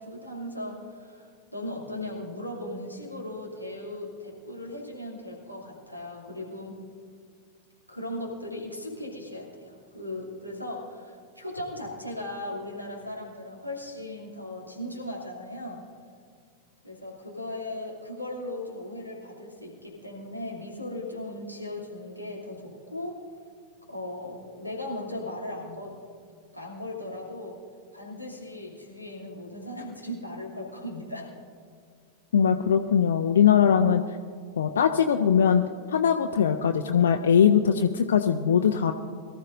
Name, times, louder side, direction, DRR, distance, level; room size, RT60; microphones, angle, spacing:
voice 1, 0.0-6.8 7.9-15.8 16.8-23.2 23.9-25.9 26.5-27.6 27.9-31.3, left 1 dB, 90° right, -1 dB, 2.7 m, -37 dB
voice 2, 32.3-34.0 34.6-35.6 35.9-38.9, left 8 dB, 65° left, 5 dB, 0.5 m, -21 dB
23.0 x 13.5 x 2.6 m, 2.1 s
figure-of-eight pair, 90°, 0 cm